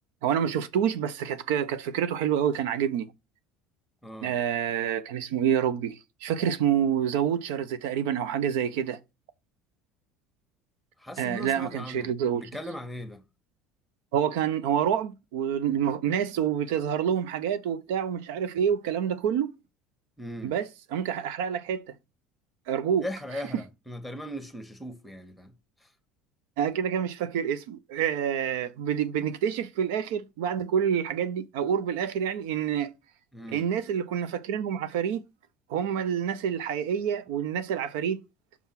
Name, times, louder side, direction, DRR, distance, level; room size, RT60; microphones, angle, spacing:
voice 1, 0.2-3.1 4.2-9.0 11.2-12.4 14.1-19.5 20.4-21.9 22.7-23.1 26.6-32.9 33.5-35.3 35.7-38.2, right 8 dB, 85° right, 0.7 m, -27 dB
voice 2, 4.0-4.3 11.0-13.2 20.2-20.5 23.0-25.5 33.3-33.7, left 1 dB, ahead, 1.5 m, -39 dB
6.1 x 3.7 x 5.8 m
supercardioid pair, 105°, 0 cm